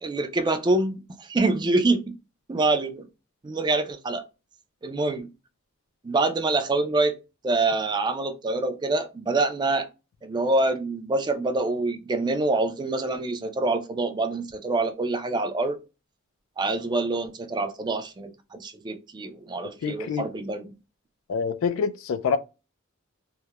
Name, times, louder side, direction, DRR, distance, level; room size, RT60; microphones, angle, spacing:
voice 1, 0.0-2.2 2.5-3.1 3.4-4.2 4.8-5.3 6.0-7.2 7.4-9.9 10.2-15.8 16.6-20.7, right 2 dB, 20° right, 0.3 m, -26 dB
voice 2, 19.8-20.3 21.3-22.4, left 6 dB, 75° left, 0.3 m, -26 dB
2.9 x 2.0 x 2.2 m
head